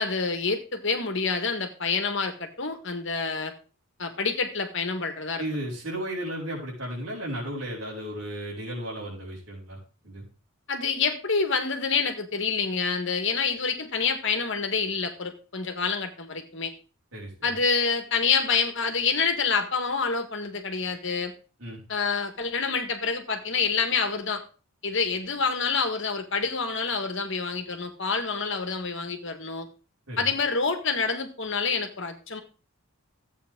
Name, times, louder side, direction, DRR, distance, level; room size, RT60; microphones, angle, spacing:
voice 1, 0.0-3.5 4.0-5.4 10.7-16.7 17.4-21.3 21.9-24.4 24.8-29.7 30.2-32.4, left 5 dB, 60° left, 6 dB, 1.8 m, -27 dB
voice 2, 5.4-9.8 10.0-10.2 17.1-17.6 21.6-21.8 30.1-30.3, right 1 dB, 70° right, -9 dB, 5.7 m, -34 dB
14.5 x 8.6 x 3.8 m, 0.36 s
head